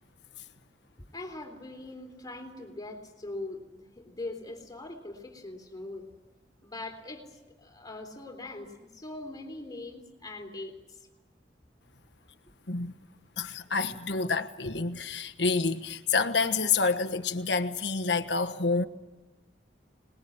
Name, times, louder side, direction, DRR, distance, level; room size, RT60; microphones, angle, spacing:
voice 1, 1.1-6.1 6.6-7.3 7.6-10.7, left 2 dB, 20° left, 4 dB, 3.6 m, -41 dB
voice 2, 13.4-18.9, left 4 dB, 75° left, 9 dB, 1.4 m, -28 dB
26.0 x 20.5 x 8.8 m, 1.1 s
head